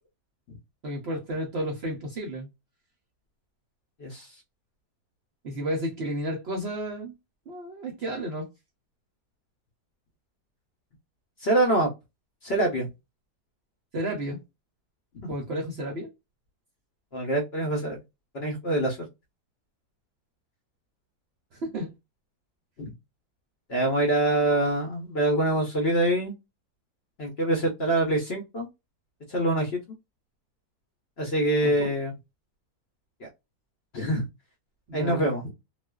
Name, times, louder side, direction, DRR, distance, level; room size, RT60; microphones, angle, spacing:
voice 1, 0.8-2.5 5.4-7.1 7.5-8.5 13.9-14.4 15.3-16.1 21.5-21.9 31.6-31.9 34.9-35.3, right 1 dB, 55° right, 0.7 m, -32 dB
voice 2, 11.4-11.9 12.4-12.9 15.2-15.3 17.1-18.0 18.3-19.1 22.8-22.9 23.7-26.3 27.2-28.7 29.3-29.8 31.2-32.1 33.9-34.2 34.9-35.5, right 1 dB, 50° left, 0.8 m, -25 dB
2.4 x 2.3 x 2.2 m
omnidirectional pair, 1.7 m